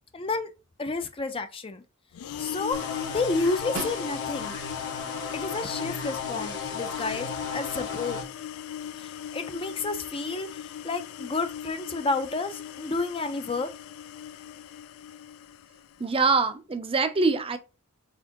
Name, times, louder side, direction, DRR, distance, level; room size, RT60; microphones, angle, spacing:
voice 1, 0.1-0.5 0.8-1.8 2.4-4.5 5.3-8.2 9.0-10.5 10.8-13.7, left 3 dB, 25° left, 0.5 m, -30 dB
sound 1, 2.1-16.1, left 10 dB, 80° left, 0.3 m, -39 dB
sound 2, 2.7-8.2, left 5 dB, 60° left, 1.1 m, -35 dB
Snare drum, 3.7-4.7 9.1-9.2, right 4 dB, 65° right, 0.9 m, -38 dB
voice 2, 16.0-17.6, right 4 dB, 25° right, 0.6 m, -24 dB
4.2 x 3.5 x 2.9 m
head